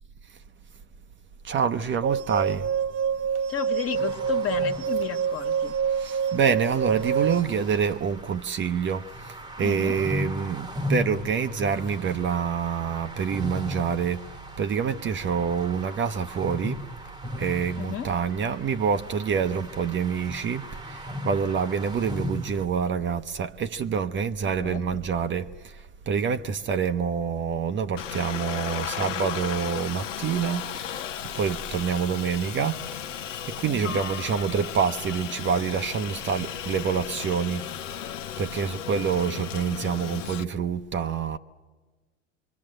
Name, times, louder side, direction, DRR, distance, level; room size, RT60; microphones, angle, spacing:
voice 1, 1.4-2.7 6.0-14.3 14.6-16.9 17.4-31.0 31.3-33.0 33.5-37.6 37.9-38.0 38.4-41.4, right 6 dB, 30° right, 0.8 m, -27 dB
sound 1, 2.0-7.4, right 7 dB, 65° right, 0.8 m, -27 dB
voice 2, 3.5-5.8 9.6-10.0 17.7-18.1 24.4-25.1 33.7-34.0, left 10 dB, 40° left, 1.6 m, -33 dB
sound 2, 3.9-22.7, left 1 dB, 10° right, 1.2 m, -37 dB
Aircraft, 28.0-40.4, left 10 dB, 85° left, 0.8 m, -35 dB
27.5 x 23.0 x 7.8 m
hypercardioid pair, 80°, 36 cm